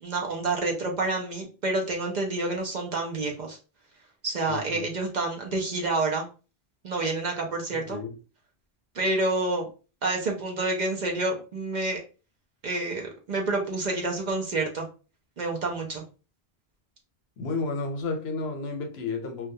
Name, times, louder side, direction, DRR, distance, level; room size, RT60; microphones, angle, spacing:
voice 1, 0.0-3.6 4.2-6.3 6.8-8.0 8.9-9.7 10.0-12.0 12.6-14.9 15.4-16.0, right 2 dB, 55° right, 0.6 m, -28 dB
voice 2, 4.5-4.9 7.7-8.1 17.4-19.5, left 3 dB, 85° left, 0.9 m, -32 dB
2.3 x 2.2 x 2.6 m
omnidirectional pair, 1.0 m